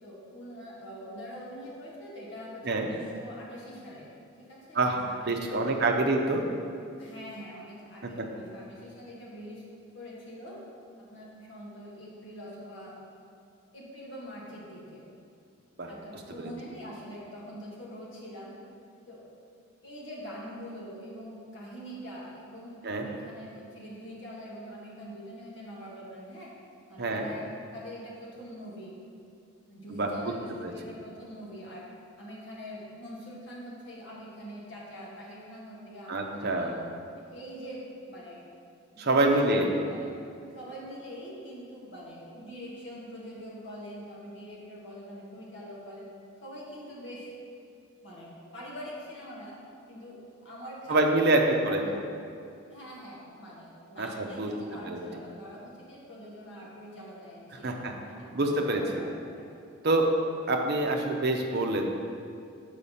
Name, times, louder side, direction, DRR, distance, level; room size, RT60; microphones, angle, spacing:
voice 1, 0.0-4.1 4.5-6.0 7.0-9.6 9.9-10.6 11.1-12.9 13.7-15.0 15.9-18.5 19.1-19.2 19.8-26.5 26.9-28.9 29.7-31.8 32.2-36.8 37.1-38.4 38.9-40.1 40.5-46.0 46.4-47.3 48.0-49.5 49.9-52.0 52.7-59.5, equal, 55° left, -5 dB, 1.8 m, -44 dB
voice 2, 5.3-6.4 8.0-8.3 15.8-15.9 16.4-16.5 22.8-23.1 27.0-27.3 29.9-30.1 30.6-30.7 36.1-36.7 39.0-39.7 50.9-51.8 54.0-54.5 54.9-55.0 57.6-57.9 58.3-59.1 59.8-60.1 60.5-61.9, right 2 dB, 45° right, 2 dB, 0.7 m, -26 dB
6.7 x 5.0 x 5.6 m, 2.4 s
head